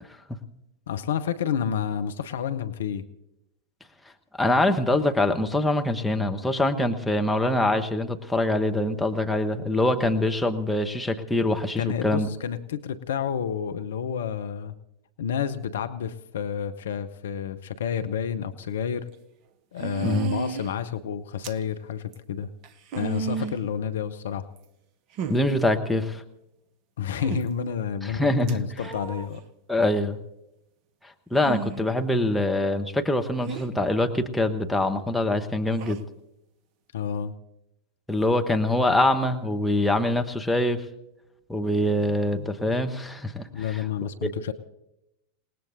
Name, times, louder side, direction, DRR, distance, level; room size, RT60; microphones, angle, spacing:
voice 1, 0.9-3.1 11.8-14.7 15.2-19.1 19.7-22.5 23.0-24.5 27.0-29.4 36.9-37.3 43.5-44.5, left 8 dB, 60° left, 10 dB, 0.7 m, -30 dB
voice 2, 4.4-12.3 20.0-20.3 25.3-26.2 28.0-28.6 29.7-30.2 31.3-36.0 38.1-40.8 41.5-43.8, left 1 dB, 5° left, 3 dB, 1.1 m, -24 dB
sound 1, 18.7-18.8 19.8-20.7 21.4-21.6 22.1-22.2 22.6-23.6 24.6-24.7 25.2-25.4 27.2-27.4 28.5-29.3 31.4-31.9 33.5-33.7 35.7-36.0, right 7 dB, 40° right, 0.8 m, -32 dB
27.5 x 19.0 x 2.6 m, 0.84 s
figure-of-eight pair, 90°, 0 cm